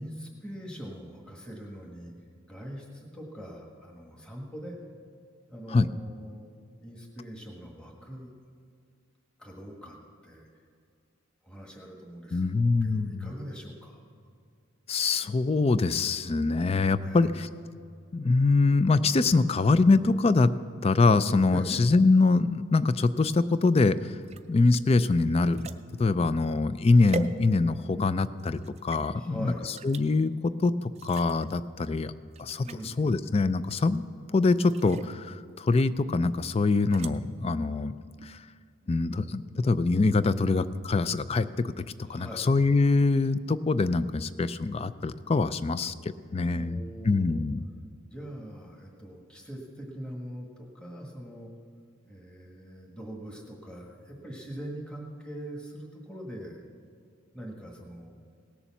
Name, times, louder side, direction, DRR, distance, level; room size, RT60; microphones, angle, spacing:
voice 1, 0.0-2.1 2.5-4.8 5.5-6.5 6.8-8.3 9.4-10.0 10.2-10.5 11.4-12.5 12.8-14.0 17.0-17.4 21.5-21.8 29.1-29.7 32.6-33.2 42.0-42.5 46.5-47.4 48.0-51.5 52.1-56.6 57.3-58.1, equal, 5° left, -1 dB, 1.5 m, -42 dB
voice 2, 12.3-13.3 14.9-17.5 18.1-20.5 20.8-24.0 24.5-25.7 26.0-29.5 29.8-30.7 31.0-32.1 32.4-32.6 33.0-34.0 34.3-37.9 38.9-41.7 42.1-45.9 46.3-46.8 47.1-47.6, left 3 dB, 30° left, 14 dB, 0.4 m, -24 dB
sound 1, 24.2-28.0 28.4-29.0 29.8-30.1 30.9-31.5 31.9-32.0 32.3-32.9 33.7-34.1 34.6-35.2 36.7-37.1, right 3 dB, 30° right, 0.4 m, -42 dB
18.0 x 7.0 x 7.1 m, 2.3 s
head